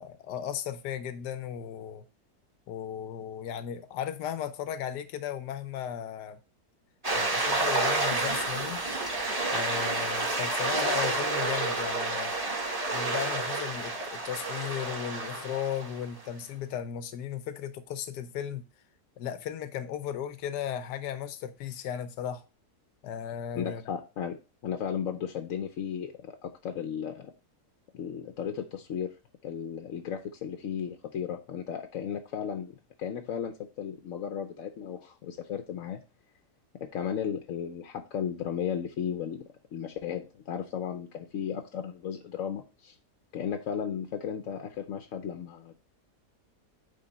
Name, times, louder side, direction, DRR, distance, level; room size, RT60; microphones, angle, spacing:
voice 1, 0.0-2.0 2.7-6.4 7.1-8.8 9.5-12.3 12.9-18.6 19.2-22.4 23.0-23.8, left 9 dB, 85° left, 1.3 m, -36 dB
sound 1, 7.0-16.2, right 2 dB, 20° right, 1.9 m, -30 dB
voice 2, 23.5-24.4 24.6-27.3 27.9-29.1 29.4-36.0 36.7-42.9 43.3-45.8, left 8 dB, 60° left, 1.0 m, -35 dB
9.3 x 3.7 x 4.0 m
omnidirectional pair, 1.8 m